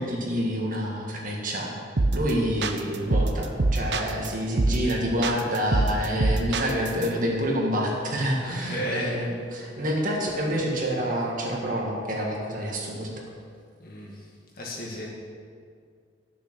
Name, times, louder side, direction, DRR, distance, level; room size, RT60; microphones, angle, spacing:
voice 1, 0.0-1.7 2.1-13.1, equal, 45° right, -2 dB, 1.8 m, -27 dB
sound 1, 2.0-2.3 2.6-4.3 4.6-4.9 5.2-7.1, right 2 dB, 65° right, 0.7 m, -24 dB
voice 2, 8.4-9.2 13.8-14.1 14.6-15.1, equal, 50° left, -3 dB, 2.1 m, -33 dB
11.5 x 6.7 x 6.3 m, 2.2 s
head